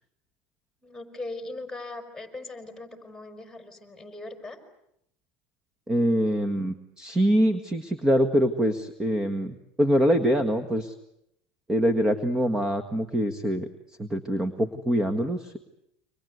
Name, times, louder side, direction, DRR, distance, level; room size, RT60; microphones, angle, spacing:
voice 1, 0.8-4.6, left 2 dB, 5° left, 6 dB, 5.1 m, -39 dB
voice 2, 5.9-10.9 11.7-13.7 14.0-15.6, equal, 15° right, 9 dB, 1.7 m, -24 dB
29.5 x 25.0 x 8.1 m, 0.77 s
supercardioid pair, 130°, 4 cm